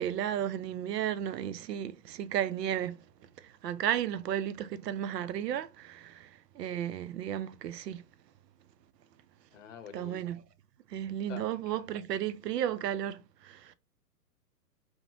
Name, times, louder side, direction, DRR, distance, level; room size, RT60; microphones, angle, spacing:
voice 1, 0.0-3.0 3.4-8.0 9.9-10.4 10.9-13.7, right 10 dB, 80° right, 0.5 m, -34 dB
voice 2, 9.5-10.2 11.3-11.8, left 7 dB, 50° left, 0.7 m, -47 dB
2.9 x 2.1 x 2.6 m
hypercardioid pair, 130°, 49 cm